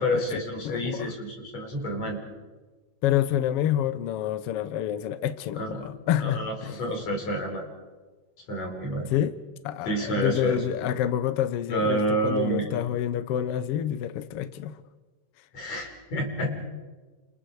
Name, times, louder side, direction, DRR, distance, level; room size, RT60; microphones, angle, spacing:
voice 1, 0.0-2.2 5.5-5.9 6.2-7.7 8.5-9.1 9.8-10.9 11.7-12.7 15.5-16.6, right 1 dB, 55° left, 6.3 m, -29 dB
voice 2, 0.6-1.1 3.0-6.8 9.0-9.3 9.6-14.8, left 11 dB, 75° left, 1.4 m, -28 dB
30.0 x 27.0 x 4.9 m
omnidirectional pair, 3.8 m